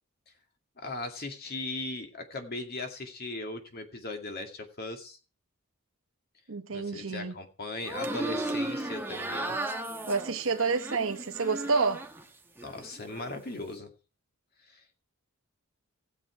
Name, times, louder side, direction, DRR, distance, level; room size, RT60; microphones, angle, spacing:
voice 1, 0.8-5.2 6.7-9.6 12.6-13.9 14.7-15.0, left 2 dB, 50° left, 2.2 m, -38 dB
voice 2, 6.5-7.3 10.1-12.0, right 4 dB, 70° right, 1.0 m, -29 dB
sound 1, 7.8-12.2 12.6-13.3, right 1 dB, 10° right, 1.1 m, -35 dB
16.5 x 7.5 x 4.7 m
head